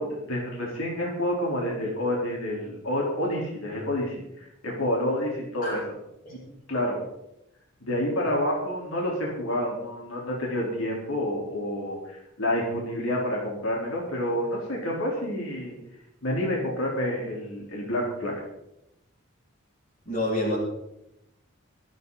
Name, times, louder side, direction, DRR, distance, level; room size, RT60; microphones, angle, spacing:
voice 1, 0.0-5.9 6.7-7.0 7.8-15.7 16.2-18.3, left 1 dB, 85° left, -3 dB, 4.0 m, -29 dB
voice 2, 20.0-20.6, left 1 dB, 40° left, -3 dB, 6.8 m, -27 dB
24.5 x 9.3 x 4.1 m, 0.82 s
head